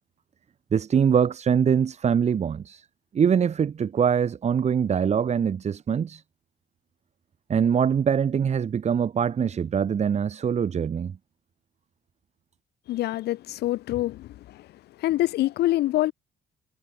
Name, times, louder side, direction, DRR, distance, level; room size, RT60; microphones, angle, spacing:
voice 1, 0.7-2.8 3.1-6.2 7.5-11.2, right 7 dB, 40° right, 4.3 m, -23 dB
voice 2, 12.9-14.7 15.0-16.1, left 15 dB, 75° left, 3.4 m, -25 dB
cardioid pair, 110°, 17 cm